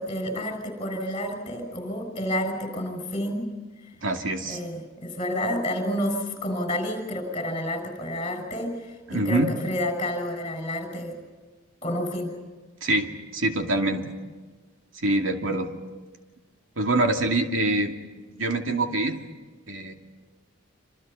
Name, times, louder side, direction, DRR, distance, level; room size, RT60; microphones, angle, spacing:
voice 1, 0.0-3.5 4.5-11.2 11.8-12.4, left 1 dB, 25° left, 4 dB, 6.5 m, -30 dB
voice 2, 4.0-4.6 9.1-9.5 12.8-14.1 14.9-15.7 16.8-17.9 18.4-19.2 19.7-19.9, right 2 dB, 75° right, 3 dB, 2.6 m, -25 dB
27.0 x 27.0 x 5.6 m, 1.3 s
head